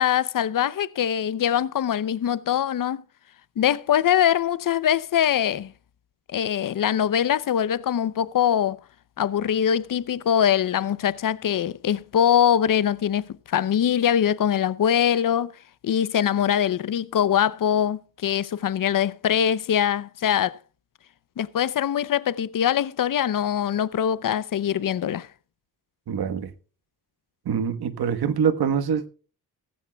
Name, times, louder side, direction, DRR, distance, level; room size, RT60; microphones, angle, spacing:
voice 1, 0.0-3.0 3.6-5.7 6.3-8.8 9.2-15.5 15.8-20.6 21.4-25.3, left 9 dB, 60° left, 0.7 m, -23 dB
voice 2, 26.1-26.5 27.4-29.1, right 7 dB, 80° right, 1.4 m, -24 dB
16.0 x 15.0 x 2.3 m
wide cardioid pair, 110°, 38 cm